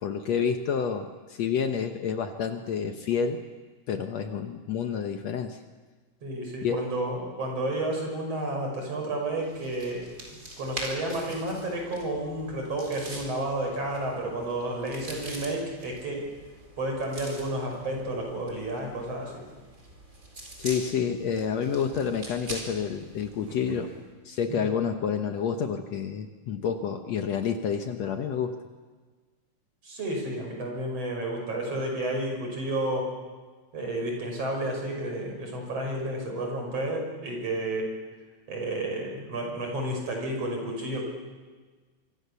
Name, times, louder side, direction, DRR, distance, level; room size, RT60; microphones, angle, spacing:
voice 1, 0.0-3.4 3.9-5.6 6.6-6.8 20.6-23.9 24.3-28.6, left 7 dB, 65° left, 6 dB, 2.1 m, -29 dB
voice 2, 6.2-10.1 10.6-16.3 16.8-19.4 23.7-23.8 24.5-24.7 29.8-33.1 33.7-37.9 38.5-41.0, right 1 dB, 50° right, 1 dB, 6.9 m, -31 dB
sound 1, 9.3-24.0, right 1 dB, 25° right, 4.6 m, -44 dB
25.5 x 24.5 x 7.0 m, 1.4 s
omnidirectional pair, 3.7 m